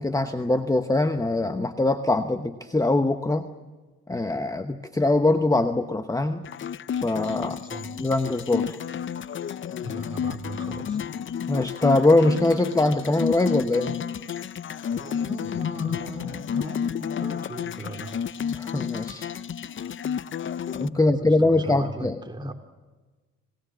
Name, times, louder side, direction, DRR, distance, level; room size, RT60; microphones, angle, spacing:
voice 1, 0.0-3.5 4.1-6.4 7.0-7.6 7.9-8.8 11.5-14.0 18.5-19.4 20.7-22.2, left 2 dB, 10° left, 9 dB, 0.9 m, -23 dB
sound 1, 6.4-20.9, left 8 dB, 40° left, 0.6 m, -31 dB
voice 2, 7.5-7.9 9.8-11.0 14.9-18.2 20.9-22.5, right 3 dB, 15° right, 3 dB, 3.1 m, -39 dB
26.5 x 19.0 x 7.4 m, 1.3 s
cardioid pair, 90°, 30 cm